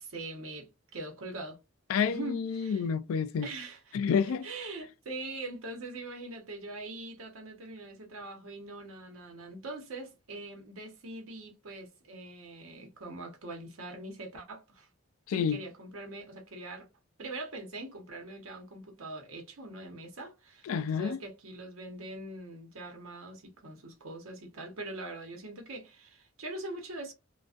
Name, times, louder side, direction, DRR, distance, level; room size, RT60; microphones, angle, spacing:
voice 1, 0.0-1.6 2.1-2.8 3.4-4.0 4.4-14.9 15.3-16.9 17.2-27.1, right 2 dB, 85° right, 0.9 m, -42 dB
voice 2, 1.9-3.5 3.9-4.5 15.3-15.6 20.7-21.2, left 6 dB, 90° left, 0.3 m, -29 dB
2.4 x 2.3 x 2.3 m
head